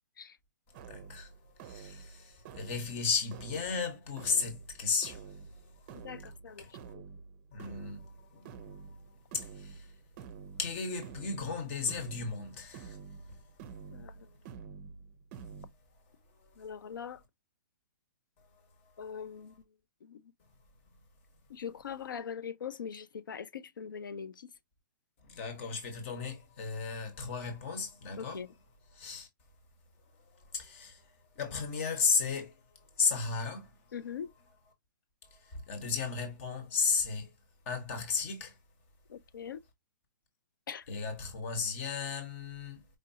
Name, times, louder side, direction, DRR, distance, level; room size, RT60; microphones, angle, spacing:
voice 1, 0.7-6.9 7.5-10.0 10.5-14.1 16.1-16.6 18.4-19.1 25.2-28.5 28.9-29.3 30.0-33.9 35.2-37.3 37.6-38.6 40.9-42.9, left 5 dB, 40° left, 1.4 m, -36 dB
sound 1, 0.7-15.7, right 6 dB, 30° right, 0.6 m, -49 dB
voice 2, 5.9-6.6 6.9-7.0 13.9-14.3 16.6-17.2 19.0-19.6 20.0-20.3 21.5-24.5 28.2-28.5 33.9-34.3 39.1-39.6 40.7-40.9, left 7 dB, 85° left, 0.6 m, -42 dB
5.1 x 2.6 x 2.8 m
hypercardioid pair, 155°, 11 cm